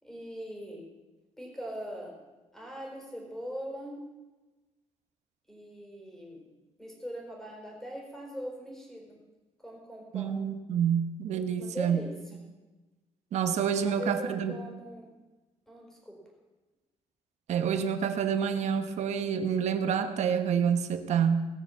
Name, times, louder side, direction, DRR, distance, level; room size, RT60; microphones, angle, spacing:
voice 1, 0.0-0.8 1.4-2.1 2.5-4.0 5.5-6.4 6.8-9.2 9.6-10.4 11.6-12.4 13.8-15.1 15.7-16.2, equal, 5° left, -1 dB, 4.5 m, -41 dB
voice 2, 10.1-12.0 13.3-14.6 17.5-21.5, right 7 dB, 75° right, 8 dB, 1.2 m, -28 dB
18.5 x 7.1 x 7.2 m, 1.2 s
cardioid pair, 135°, 12 cm